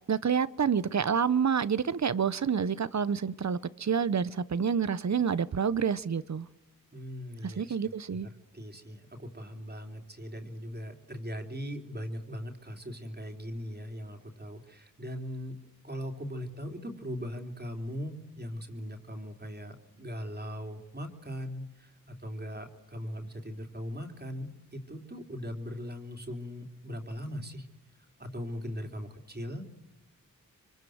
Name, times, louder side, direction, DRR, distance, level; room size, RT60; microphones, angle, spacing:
voice 1, 0.1-6.5 7.4-8.3, right 7 dB, 55° right, 17 dB, 0.9 m, -28 dB
voice 2, 6.9-7.8 8.2-15.6 15.8-27.7 28.2-29.6, equal, 30° right, 4 dB, 3.4 m, -39 dB
27.0 x 24.0 x 7.9 m, 1.0 s
cardioid pair, 55°, 33 cm